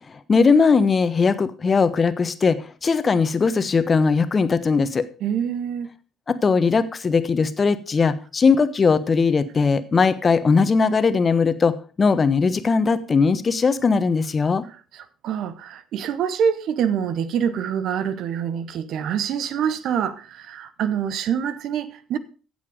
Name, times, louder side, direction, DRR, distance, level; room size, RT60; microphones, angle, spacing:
voice 1, 0.3-5.1 6.3-14.6, left 5 dB, 35° left, 1.2 m, -19 dB
voice 2, 5.2-6.0 14.7-22.2, right 8 dB, 60° right, 1.0 m, -26 dB
15.5 x 7.1 x 5.1 m
hypercardioid pair, 50°, 0 cm